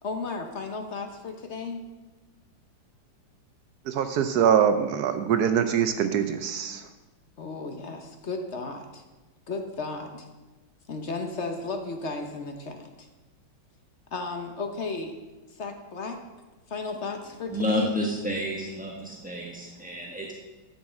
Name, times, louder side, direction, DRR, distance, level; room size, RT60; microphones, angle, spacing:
voice 1, 0.0-1.8 7.4-9.0 9.5-10.3 10.9-13.1 14.1-15.2 15.5-16.2 16.7-18.0, left 3 dB, 50° left, 5 dB, 0.9 m, -34 dB
voice 2, 3.9-6.9, right 8 dB, 75° right, 9 dB, 0.9 m, -23 dB
voice 3, 17.5-20.3, equal, 10° right, -2 dB, 0.6 m, -30 dB
10.5 x 5.6 x 7.5 m, 1.2 s
omnidirectional pair, 2.3 m